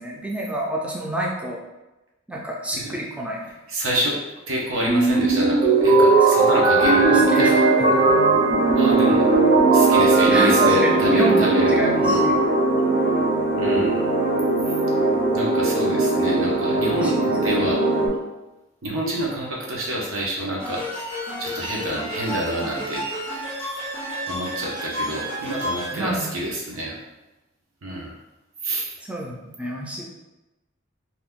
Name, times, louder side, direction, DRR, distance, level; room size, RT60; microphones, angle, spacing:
voice 1, 0.0-1.6 2.3-3.4 6.2-6.5 7.1-7.5 7.8-8.0 10.3-11.5 11.7-12.3 16.9-17.1 25.9-26.3 29.0-30.0, right 1 dB, 5° right, -3 dB, 0.4 m, -28 dB
voice 2, 3.7-4.2 4.5-7.6 8.8-9.3 9.7-12.2 13.6-14.1 14.7-14.8 15.3-17.8 18.8-20.8 21.4-23.0 24.3-26.9 27.8-28.2 28.6-28.9, right 1 dB, 90° right, -3 dB, 0.8 m, -27 dB
sound 1, 4.9-18.1, right 3 dB, 45° right, 0.7 m, -18 dB
sound 2, 20.6-25.9, equal, 75° right, 1.4 m, -31 dB
2.8 x 2.2 x 3.5 m, 1.0 s
head